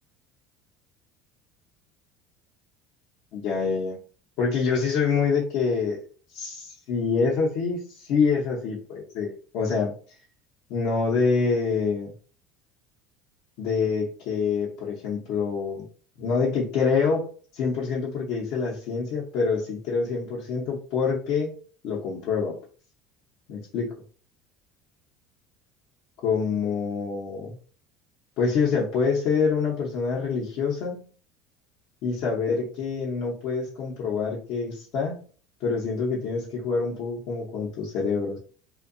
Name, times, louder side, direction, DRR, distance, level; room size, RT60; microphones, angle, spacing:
voice 1, 3.3-4.0 4.4-6.0 6.3-9.9 10.7-12.1 13.6-15.9 16.2-17.3 17.5-21.5 21.8-22.6 23.5-23.9 26.2-27.6 28.4-31.1 32.0-35.2 35.6-38.4, left 5 dB, 65° left, -3 dB, 0.6 m, -26 dB
2.6 x 2.2 x 2.5 m, 0.42 s
supercardioid pair, 120°, 0 cm